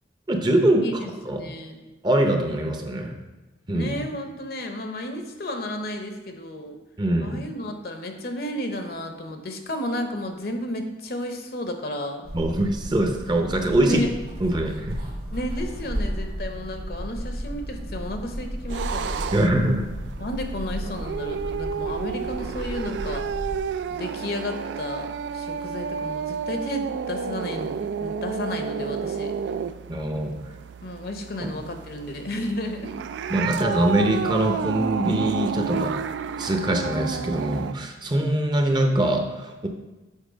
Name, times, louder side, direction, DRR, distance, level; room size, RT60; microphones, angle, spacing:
voice 1, 0.3-0.8 1.2-1.4 2.0-3.1 3.7-3.9 7.0-7.4 12.3-14.0 14.4-15.0 19.3-19.9 29.9-30.3 31.4-31.5 33.3-35.9 36.4-39.7, right 1 dB, 25° right, 4 dB, 0.6 m, -23 dB
voice 2, 0.8-1.8 3.7-6.8 7.2-12.3 13.8-14.1 15.3-19.4 20.2-23.3 23.9-25.1 25.3-29.3 30.8-32.9, left 1 dB, 55° left, 5 dB, 0.8 m, -32 dB
sound 1, 12.2-23.6, equal, 55° right, 1.4 m, -34 dB
sound 2, 18.7-37.7, right 6 dB, 75° right, 0.3 m, -31 dB
7.3 x 4.2 x 5.1 m, 1.1 s
head